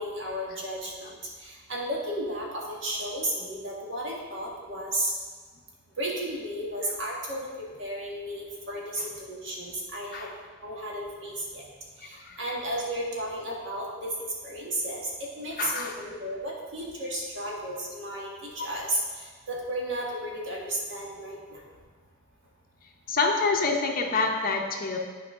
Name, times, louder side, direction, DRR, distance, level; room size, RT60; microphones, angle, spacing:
voice 1, 0.0-5.1 6.0-7.5 7.8-10.4 10.6-11.7 12.0-14.1 14.4-21.6, right 1 dB, 65° right, -3 dB, 1.8 m, -33 dB
voice 2, 15.6-15.9 18.6-18.7 23.1-25.0, left 4 dB, 45° left, 2 dB, 0.7 m, -26 dB
11.0 x 4.7 x 3.7 m, 1.5 s
head